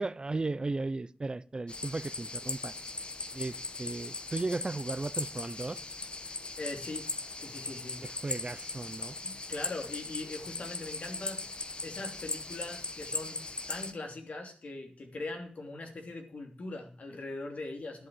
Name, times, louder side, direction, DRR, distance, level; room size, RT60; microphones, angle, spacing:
voice 1, 0.0-2.7 3.3-5.8 8.0-9.2, right 3 dB, 40° right, 0.6 m, -35 dB
sound 1, 1.7-13.9, left 3 dB, 45° left, 1.2 m, -39 dB
voice 2, 6.6-7.1 7.3-8.0 9.2-13.4 13.7-18.1, left 2 dB, 80° left, 3.0 m, -41 dB
11.5 x 7.7 x 7.8 m
wide cardioid pair, 85°, 2 cm